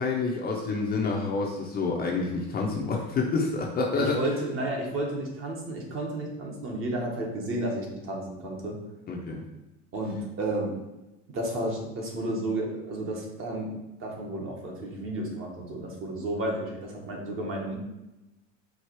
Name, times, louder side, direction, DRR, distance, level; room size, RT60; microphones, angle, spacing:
voice 1, 0.0-4.2 9.1-9.4, left 4 dB, 25° left, 0 dB, 0.6 m, -28 dB
voice 2, 3.9-8.8 9.9-10.7 11.3-13.7 14.0-17.8, right 1 dB, 35° right, 0 dB, 1.2 m, -32 dB
4.7 x 2.5 x 4.5 m, 0.99 s
supercardioid pair, 125°, 36 cm